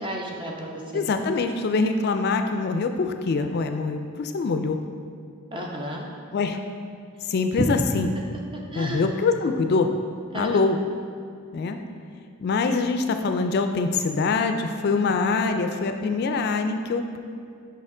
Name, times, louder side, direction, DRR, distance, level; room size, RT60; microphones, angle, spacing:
voice 1, 0.0-1.1 5.5-6.1 7.6-7.7 7.9-8.0 8.5-9.0 10.3-10.5, right 1 dB, 25° right, -1 dB, 0.8 m, -31 dB
voice 2, 0.9-4.8 6.3-6.6 7.2-8.1 8.7-9.9 10.3-10.8 11.5-11.8 12.4-17.2, left 4 dB, 50° left, 7 dB, 0.3 m, -24 dB
6.5 x 5.3 x 3.7 m, 2.4 s
head